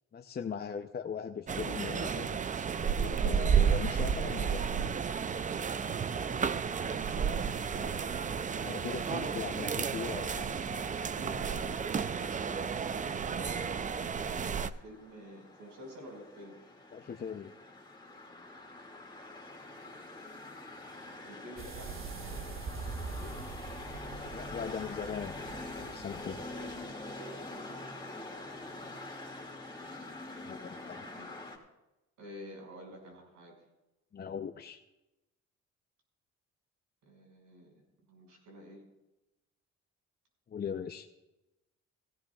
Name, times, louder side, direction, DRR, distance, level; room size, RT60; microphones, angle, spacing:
voice 1, 0.1-2.4 3.0-4.9 8.6-10.5 16.9-17.5 24.3-25.4 25.8-26.4 30.4-31.1 34.1-34.8 40.5-41.1, left 7 dB, 35° left, 5 dB, 0.6 m, -39 dB
sound 1, 1.5-14.7, right 7 dB, 25° right, 0.4 m, -32 dB
voice 2, 6.7-8.2 11.1-16.6 21.2-23.4 30.8-31.3 32.2-33.5 37.0-37.7 38.1-38.8, equal, 80° right, 0 dB, 5.6 m, -50 dB
sound 2, 14.5-31.6, left 2 dB, 15° left, 2.2 m, -45 dB
sound 3, 21.6-26.9, right 4 dB, 45° right, 1.1 m, -44 dB
17.0 x 15.5 x 2.4 m, 0.99 s
cardioid pair, 90°, 30 cm